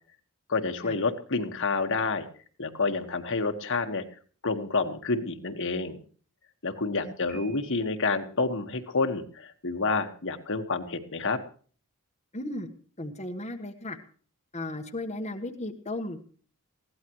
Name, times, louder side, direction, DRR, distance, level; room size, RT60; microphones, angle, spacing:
voice 1, 0.5-2.3 2.6-4.0 4.4-6.0 6.6-11.4, left 3 dB, 60° left, 6 dB, 1.6 m, -29 dB
Piano, 7.3-8.2, right 3 dB, 5° left, 6.3 m, -53 dB
voice 2, 12.3-12.7 13.0-14.0 14.5-16.2, left 1 dB, 30° left, 4 dB, 1.4 m, -35 dB
21.5 x 16.5 x 3.1 m, 0.43 s
head